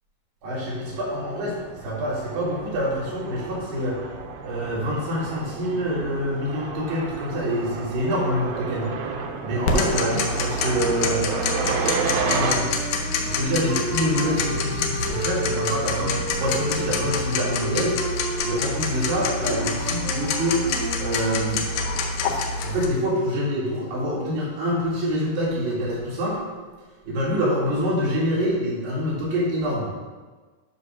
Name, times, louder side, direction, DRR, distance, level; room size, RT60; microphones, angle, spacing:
voice 1, 0.4-4.0 4.4-8.9 9.4-11.2 12.1-12.7 13.2-18.0 18.4-21.7 22.6-26.4 27.1-29.9, equal, 70° right, -6 dB, 3.9 m, -26 dB
sound 1, 0.8-12.6, right 5 dB, 90° right, 2.6 m, -31 dB
Tick-tock, 9.7-22.9, left 3 dB, 85° left, 1.6 m, -27 dB
Wind instrument woodwind instrument, 10.8-21.9, right 1 dB, 50° right, 3.4 m, -34 dB
9.7 x 3.3 x 6.1 m, 1.3 s
omnidirectional pair, 4.4 m